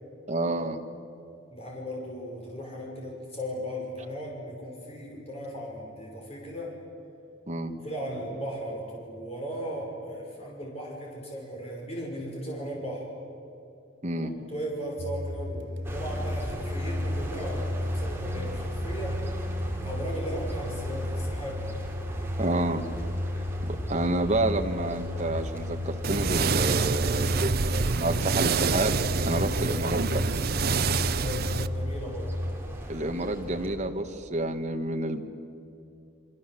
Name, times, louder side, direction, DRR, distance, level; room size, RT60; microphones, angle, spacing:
voice 1, 0.3-0.8 7.5-7.7 14.0-14.4 22.4-22.8 23.6-29.0 29.2-30.2 32.9-35.2, right 2 dB, 35° right, 4 dB, 1.8 m, -29 dB
voice 2, 1.5-6.8 7.8-13.1 14.2-19.2 19.8-21.7 31.0-32.4, equal, 30° left, -2 dB, 5.9 m, -37 dB
sound 1, 15.0-32.5, left 1 dB, 70° right, 2.5 m, -33 dB
sound 2, 15.8-33.8, right 1 dB, 10° right, 3.3 m, -40 dB
sound 3, 26.0-31.7, right 5 dB, 50° right, 0.6 m, -27 dB
29.0 x 25.0 x 7.9 m, 2.7 s
head